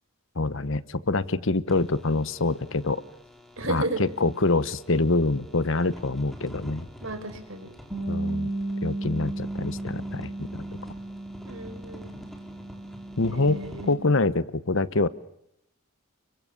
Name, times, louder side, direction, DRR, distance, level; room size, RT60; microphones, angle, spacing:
voice 1, 0.4-3.0 3.7-6.9 8.1-8.5 8.8-10.6 13.2-13.6 13.9-15.1, left 3 dB, 65° left, 15 dB, 1.1 m, -25 dB
sound 1, 1.7-13.9, equal, ahead, 4.2 m, -46 dB
voice 2, 3.6-4.0 7.0-7.7 11.4-12.1 13.3-14.0, right 2 dB, 65° right, 8 dB, 4.9 m, -33 dB
Bass guitar, 7.9-14.2, right 2 dB, 20° right, 7.2 m, -34 dB
30.0 x 24.0 x 7.0 m, 0.80 s
head